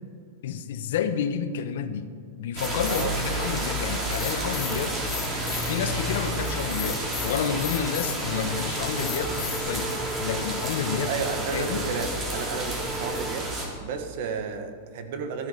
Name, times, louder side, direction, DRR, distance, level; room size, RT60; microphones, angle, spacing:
voice 1, 0.4-2.1 2.4-5.0 5.7-11.1 11.5-11.9, left 8 dB, 75° left, 11 dB, 0.8 m, -30 dB
sound 1, 2.6-3.1 4.0-5.8 6.6-8.2 8.7-9.6, left 11 dB, 40° left, 2.2 m, -35 dB
sound 2, 2.6-13.7, right 1 dB, 25° right, 2.8 m, -30 dB
sound 3, 3.4-5.2 5.5-6.5 6.9-13.3, right 2 dB, 5° right, 0.4 m, -39 dB
voice 2, 10.9-13.5 13.8-15.5, right 5 dB, 60° right, 7 dB, 1.4 m, -32 dB
13.0 x 9.2 x 5.0 m, 2.3 s
supercardioid pair, 135°, 0 cm